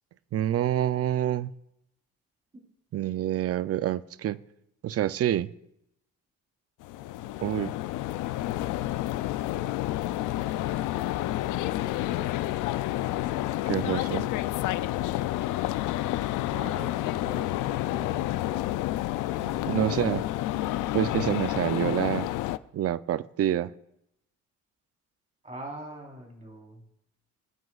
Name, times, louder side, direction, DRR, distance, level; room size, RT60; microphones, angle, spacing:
voice 1, 0.3-1.5 2.9-4.4 4.8-5.5 7.4-7.8 13.7-14.3 19.7-20.2 20.9-22.3 22.7-23.7, right 11 dB, 50° right, 16 dB, 0.5 m, -27 dB
sound 1, 6.8-22.6, left 15 dB, 90° left, 0.5 m, -29 dB
voice 2, 16.5-18.7 19.3-20.1 25.4-26.8, right 1 dB, 25° right, 0 dB, 3.9 m, -43 dB
22.5 x 9.2 x 2.4 m, 0.82 s
cardioid pair, 90°, 30 cm